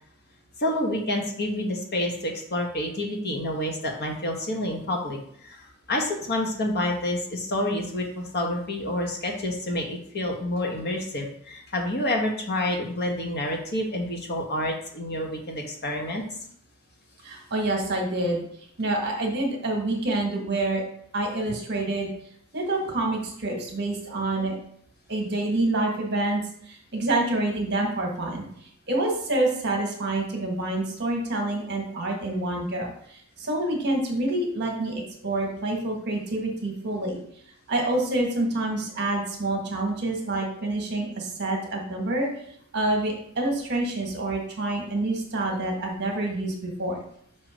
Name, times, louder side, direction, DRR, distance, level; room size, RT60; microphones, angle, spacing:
voice 1, 0.6-16.2, left 1 dB, 50° left, 1 dB, 1.1 m, -28 dB
voice 2, 17.2-18.5 18.8-20.8 21.1-22.1 22.5-24.6 25.1-28.5 28.9-37.2 37.7-42.3 42.7-47.0, right 2 dB, 50° right, 1 dB, 1.4 m, -27 dB
6.7 x 2.9 x 4.9 m, 0.66 s
head